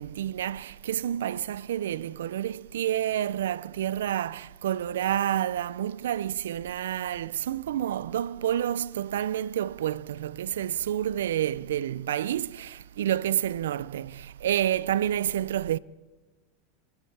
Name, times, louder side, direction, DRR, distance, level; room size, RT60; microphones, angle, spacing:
voice 1, 0.0-15.8, right 11 dB, 85° right, 0.4 m, -29 dB
25.0 x 12.0 x 3.3 m
hypercardioid pair, 105°, 0 cm